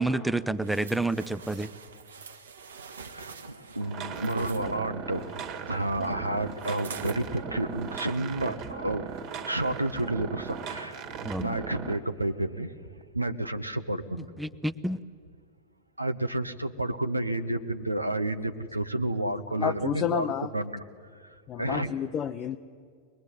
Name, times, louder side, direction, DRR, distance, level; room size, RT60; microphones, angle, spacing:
voice 1, 0.0-1.7 11.2-11.6 14.4-15.0, right 2 dB, 5° right, 14 dB, 0.8 m, -29 dB
sound 1, 0.6-4.6 6.6-7.2 7.8-7.9, right 5 dB, 70° right, 1.4 m, -44 dB
voice 2, 2.8-14.3 16.0-20.8 21.2-21.3 21.6-21.9, right 1 dB, 85° right, 8 dB, 1.0 m, -31 dB
sound 2, 3.8-12.0, right 6 dB, 40° right, 1.9 m, -38 dB
voice 3, 19.5-20.5 21.5-22.6, left 9 dB, 30° left, 6 dB, 0.7 m, -30 dB
23.0 x 21.0 x 9.9 m, 2.1 s
figure-of-eight pair, 90°, 0 cm